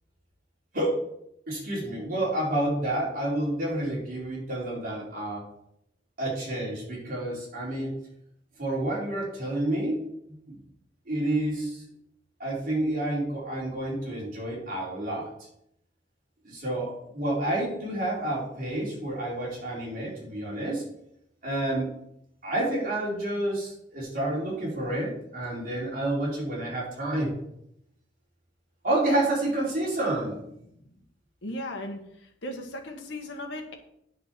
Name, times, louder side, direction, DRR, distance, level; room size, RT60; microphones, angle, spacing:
voice 1, 0.7-1.1 1.5-5.4 6.2-7.9 8.6-10.0 10.3-10.6 11.1-11.8 12.4-15.3 16.4-20.8 21.4-21.9 22.4-27.3 28.8-30.4, right 1 dB, 50° right, -5 dB, 4.2 m, -29 dB
voice 2, 31.4-33.7, left 1 dB, 85° left, 2 dB, 1.5 m, -37 dB
9.9 x 6.6 x 4.6 m, 0.75 s
head